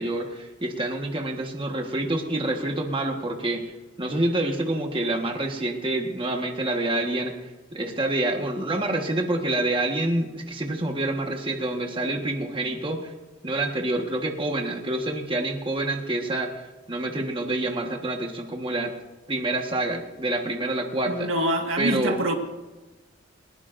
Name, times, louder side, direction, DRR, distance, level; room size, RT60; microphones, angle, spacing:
voice 1, 0.0-7.3 7.7-13.1 13.4-18.9 19.3-21.3 21.8-22.2, right 1 dB, 25° right, 2 dB, 1.4 m, -27 dB
voice 2, 21.1-22.3, right 1 dB, 70° right, 3 dB, 1.9 m, -25 dB
21.0 x 20.5 x 2.6 m, 1.2 s
head